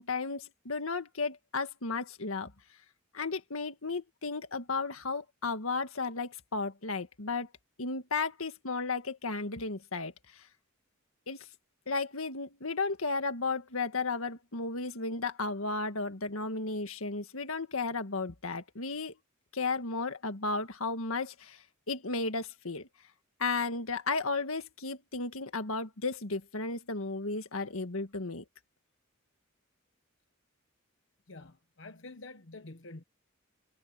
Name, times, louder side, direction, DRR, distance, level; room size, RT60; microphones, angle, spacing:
voice 1, 0.0-2.5 3.1-7.5 7.8-10.4 11.3-11.5 11.9-19.1 19.5-22.9 23.4-28.4, left 3 dB, 90° left, 1.8 m, -34 dB
voice 2, 31.3-33.0, left 2 dB, 65° left, 1.1 m, -48 dB
head